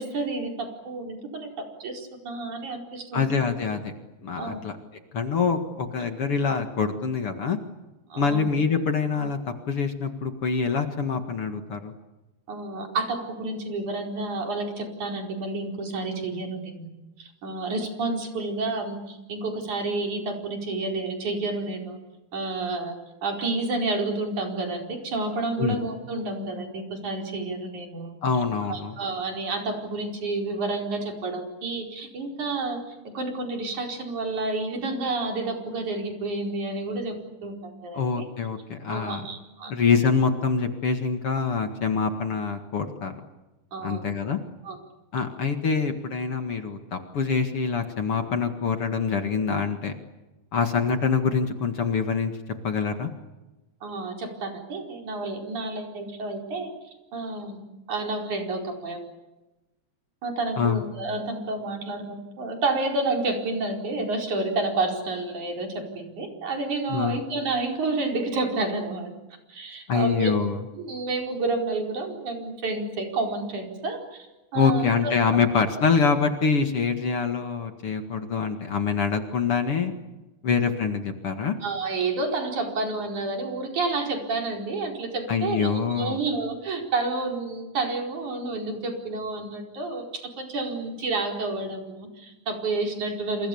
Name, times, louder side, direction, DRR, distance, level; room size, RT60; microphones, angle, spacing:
voice 1, 0.0-3.3 4.4-4.6 8.1-8.5 12.5-16.9 17.2-22.0 22.3-22.9 23.2-28.1 28.7-38.3 38.9-39.7 43.7-44.0 44.6-44.8 53.8-56.7 57.1-59.0 60.2-69.1 69.5-70.4 70.8-74.3 74.5-75.2 81.6-93.5, right 3 dB, 80° right, 2 dB, 6.1 m, -30 dB
voice 2, 3.1-3.9 4.2-4.7 5.1-7.6 8.2-11.9 25.6-25.8 28.2-29.0 37.9-39.2 39.7-43.2 43.8-44.4 45.1-50.0 50.5-52.3 52.6-53.1 60.6-60.8 66.9-67.2 69.9-70.6 74.5-79.9 80.4-81.6 85.3-86.2, left 5 dB, 50° left, 6 dB, 2.6 m, -25 dB
28.5 x 27.5 x 7.1 m, 1.1 s
omnidirectional pair, 3.4 m